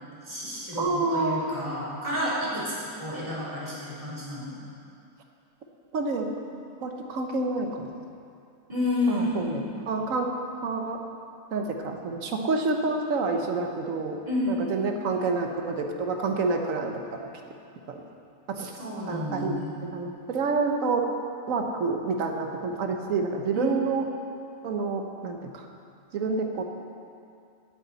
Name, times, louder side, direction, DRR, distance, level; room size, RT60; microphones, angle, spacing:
voice 1, 0.2-4.6 8.7-9.7 14.3-14.6 18.7-19.7 23.5-23.7, left 1 dB, 25° right, -9 dB, 3.5 m, -30 dB
voice 2, 0.8-1.5 5.9-6.3 6.8-7.9 9.1-10.3 10.6-11.0 11.5-14.2 14.5-17.3 17.9-18.0 18.5-18.7 19.1-19.6 19.9-21.0 21.5-24.1 24.6-25.7 26.1-26.6, right 4 dB, 75° right, 3 dB, 1.4 m, -28 dB
17.5 x 8.4 x 4.0 m, 2.5 s
omnidirectional pair, 1.4 m